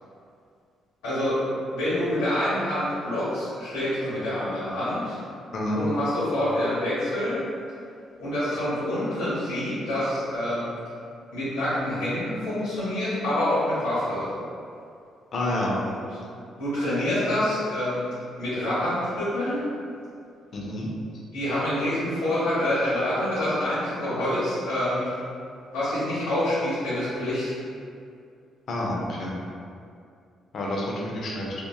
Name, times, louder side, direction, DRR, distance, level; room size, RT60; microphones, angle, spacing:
voice 1, 1.0-1.4 1.7-5.2 5.7-7.4 8.2-10.7 11.3-14.3 16.6-18.1 18.4-19.6 21.3-25.1 25.7-27.6, left 1 dB, 90° left, -11 dB, 0.9 m, -26 dB
voice 2, 5.5-5.8 15.3-15.8 20.5-20.9 28.7-29.4 30.5-31.5, left 1 dB, 60° left, -3 dB, 0.5 m, -28 dB
2.7 x 2.2 x 2.3 m, 2.4 s
supercardioid pair, 70°, 0 cm